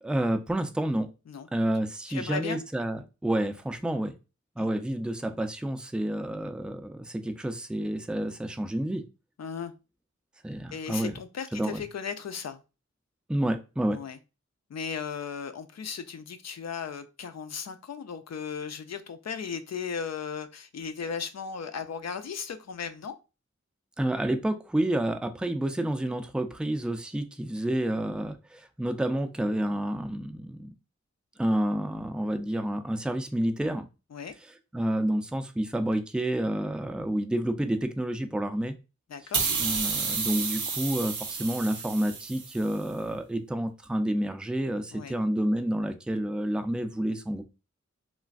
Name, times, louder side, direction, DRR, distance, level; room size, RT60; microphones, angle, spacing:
voice 1, 0.0-1.1 1.5-4.1 4.6-9.0 10.4-11.2 11.5-11.8 13.3-14.0 24.0-30.7 31.4-33.8 34.7-38.7 39.6-47.4, right 1 dB, 5° right, 7 dB, 0.3 m, -29 dB
voice 2, 2.1-2.6 4.6-4.7 9.4-9.7 10.7-12.6 13.9-14.2 14.7-23.1 34.1-34.4 39.1-39.5 44.9-45.1, left 6 dB, 65° left, 10 dB, 0.4 m, -36 dB
sound 1, 39.3-42.7, right 5 dB, 90° right, 0.5 m, -31 dB
3.1 x 2.5 x 2.4 m, 0.30 s
wide cardioid pair, 50°, 29 cm